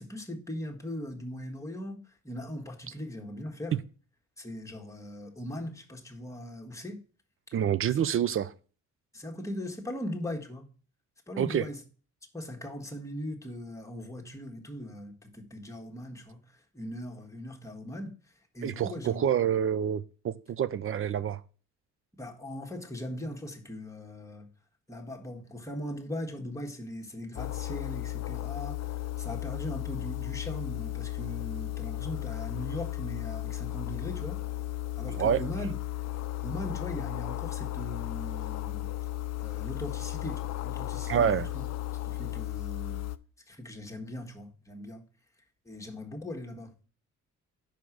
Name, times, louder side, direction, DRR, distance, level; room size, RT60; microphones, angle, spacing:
voice 1, 0.0-3.8 4.4-7.0 9.1-10.7 11.3-11.8 12.3-18.2 18.5-19.2 22.1-24.5 24.9-34.4 35.0-35.8 36.4-38.9 39.4-41.6 42.0-43.1 43.5-45.0 45.6-46.7, left 1 dB, 10° left, 1.5 m, -39 dB
voice 2, 7.5-8.5 11.4-11.6 18.6-21.4 35.1-35.4 41.1-41.5, right 9 dB, 45° right, 0.5 m, -27 dB
sound 1, 27.4-43.2, left 16 dB, 60° left, 0.5 m, -35 dB
5.2 x 5.0 x 5.9 m
cardioid pair, 90°, 30 cm